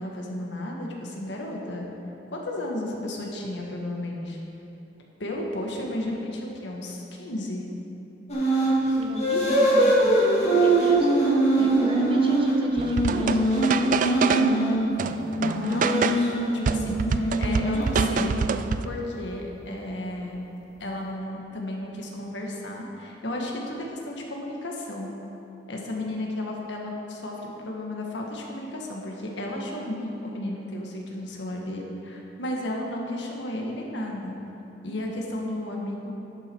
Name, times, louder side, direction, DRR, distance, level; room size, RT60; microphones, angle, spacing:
voice 1, 0.0-1.9 2.3-4.4 5.2-7.6 15.4-16.3 16.6-18.4 18.8-20.4 20.8-25.1 25.7-34.3 34.8-36.1, left 1 dB, 90° left, -1 dB, 1.5 m, -33 dB
sound 1, 8.3-8.8 9.2-14.8 15.5-18.5, right 2 dB, 40° left, 2.1 m, -22 dB
voice 2, 8.9-11.1 11.6-14.8, right 1 dB, 30° right, 1 dB, 1.1 m, -33 dB
sound 2, 12.8-14.6 15.0-16.3 16.7-18.9, right 5 dB, 45° right, 0.3 m, -27 dB
11.5 x 7.3 x 4.6 m, 3.0 s
head